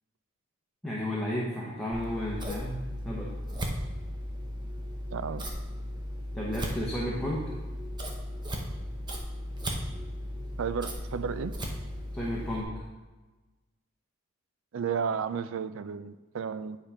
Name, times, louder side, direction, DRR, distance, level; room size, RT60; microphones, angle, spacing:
voice 1, 0.8-3.3 6.3-7.4 12.1-12.8, equal, 5° left, -6 dB, 1.0 m, -33 dB
Scissors, 1.9-12.6, equal, 20° right, 0.8 m, -36 dB
voice 2, 5.1-5.5 10.6-11.5 14.7-16.8, right 6 dB, 65° right, 13 dB, 0.4 m, -33 dB
9.7 x 3.5 x 4.9 m, 1.2 s
head